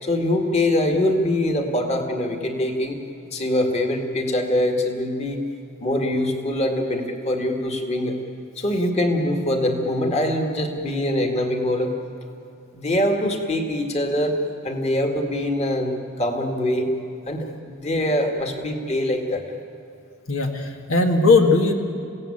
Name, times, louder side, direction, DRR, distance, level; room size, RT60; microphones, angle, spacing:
voice 1, 0.0-3.0 3.3-5.4 5.8-8.2 8.6-11.9 12.7-14.4 14.6-16.9 17.3-19.4, left 1 dB, 30° left, 3 dB, 2.2 m, -23 dB
voice 2, 20.3-21.7, left 3 dB, 80° left, 3 dB, 2.0 m, -18 dB
29.0 x 17.5 x 8.7 m, 2.7 s
head